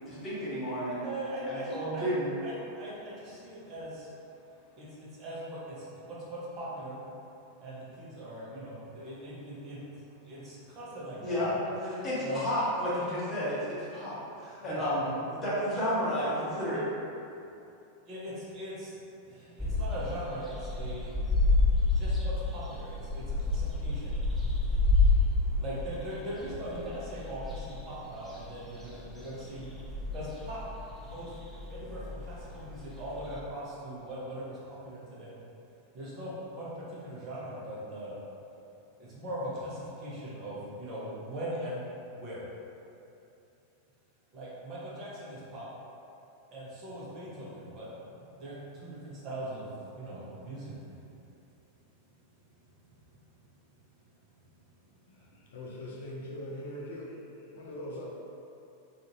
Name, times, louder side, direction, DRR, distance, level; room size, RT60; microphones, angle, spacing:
voice 1, 0.1-1.1 1.5-2.3 11.2-11.5 12.0-16.8, equal, 25° left, -10 dB, 1.0 m, -31 dB
voice 2, 1.0-2.1 2.4-4.1 4.8-7.0 7.6-9.8 10.2-12.5 14.6-15.1 18.1-19.0 19.3-21.2 21.9-24.2 25.6-29.7 30.1-30.6 31.1-35.4 35.9-38.2 39.0-42.4 44.3-45.7 46.5-50.8, right 1 dB, 35° right, -7 dB, 0.7 m, -40 dB
sound 1, 19.6-33.4, left 2 dB, 5° left, 0.5 m, -30 dB
voice 3, 55.5-57.1 57.5-58.1, left 1 dB, 60° left, -4 dB, 0.4 m, -40 dB
2.5 x 2.4 x 2.9 m, 2.7 s
figure-of-eight pair, 90°, 0 cm